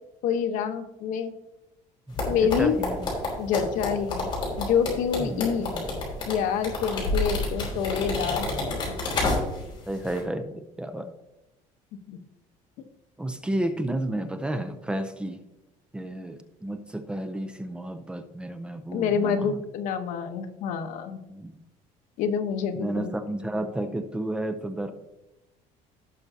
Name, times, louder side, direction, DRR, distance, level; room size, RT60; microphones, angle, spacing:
voice 1, 0.2-1.3 2.3-2.7 3.4-5.7 6.3-8.9 12.1-12.2 18.9-21.2 22.2-23.1, left 7 dB, 70° left, 7 dB, 1.1 m, -27 dB
voice 2, 2.1-3.1 5.2-5.9 9.9-11.1 13.2-15.4 15.9-19.5 21.3-21.5 22.8-24.9, right 1 dB, 5° right, 7 dB, 0.5 m, -32 dB
sound 1, 2.2-9.7 10.0-10.2, left 2 dB, 35° left, 3.7 m, -29 dB
17.0 x 6.0 x 2.8 m, 0.97 s
cardioid pair, 160°, 14 cm